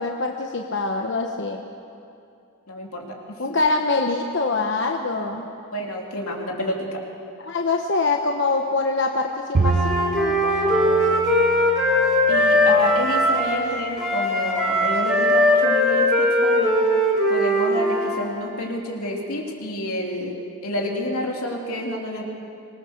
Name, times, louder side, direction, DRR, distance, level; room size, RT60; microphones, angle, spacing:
voice 1, 0.0-1.6 3.4-5.4 7.4-11.1, left 3 dB, 55° left, 2 dB, 1.1 m, -24 dB
voice 2, 2.7-3.6 5.7-7.0 12.3-16.8 17.3-20.3 20.6-22.2, left 1 dB, 85° left, 0 dB, 3.4 m, -29 dB
Bowed string instrument, 9.5-12.9, right 3 dB, 60° right, 0.6 m, -28 dB
Wind instrument woodwind instrument, 9.6-13.6 14.0-18.2, left 1 dB, ahead, 3.8 m, -20 dB
25.0 x 20.0 x 6.7 m, 2.5 s
head